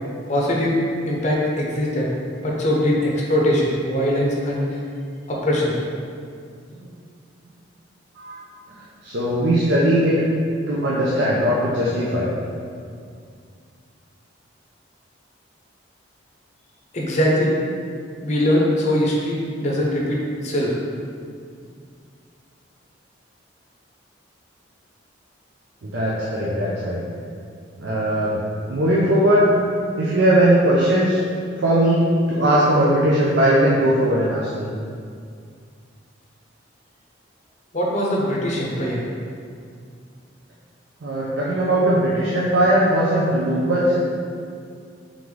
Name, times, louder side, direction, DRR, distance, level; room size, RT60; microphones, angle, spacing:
voice 1, 0.3-0.8 1.1-2.1 2.4-4.8 5.3-5.7 16.9-17.6 18.2-20.8 37.7-39.0, equal, 35° left, -3 dB, 0.6 m, -21 dB
voice 2, 8.8-10.2 10.7-12.3 25.8-27.0 27.8-28.4 28.7-29.5 30.0-31.2 31.6-34.7 41.0-44.0, right 1 dB, 65° right, -7 dB, 0.5 m, -19 dB
3.8 x 3.6 x 3.2 m, 2.2 s
head